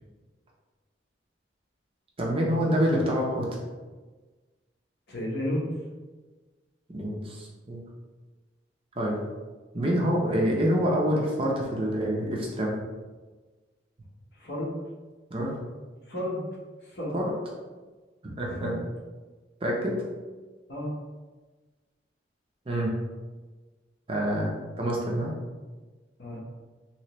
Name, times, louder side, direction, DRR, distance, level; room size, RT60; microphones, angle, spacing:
voice 1, 2.2-3.6 6.9-7.8 9.0-9.2 9.7-12.7 15.3-15.5 17.1-17.2 18.2-18.7 19.6-20.0 22.7-22.9 24.1-25.3, equal, 30° right, -3 dB, 0.6 m, -26 dB
voice 2, 5.1-5.7 14.4-14.7 16.1-16.4 16.8-17.1 18.6-18.8 20.7-20.9 26.2-26.4, left 1 dB, 60° left, -3 dB, 0.9 m, -32 dB
3.2 x 3.0 x 3.0 m, 1.3 s
head